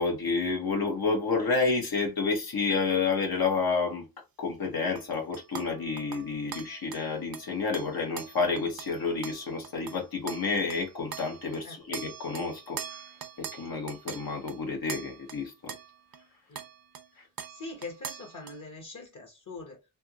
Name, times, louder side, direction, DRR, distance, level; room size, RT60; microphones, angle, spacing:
voice 1, 0.0-4.0 4.4-12.8 13.4-15.7, left 4 dB, 85° left, 1.2 m, -29 dB
sound 1, 5.0-11.7 11.9-16.3 16.6-17.1 17.4-18.6, right 8 dB, 75° right, 0.6 m, -43 dB
voice 2, 17.5-19.8, left 3 dB, 55° left, 1.1 m, -42 dB
3.4 x 2.9 x 2.3 m
wide cardioid pair, 90°, 36 cm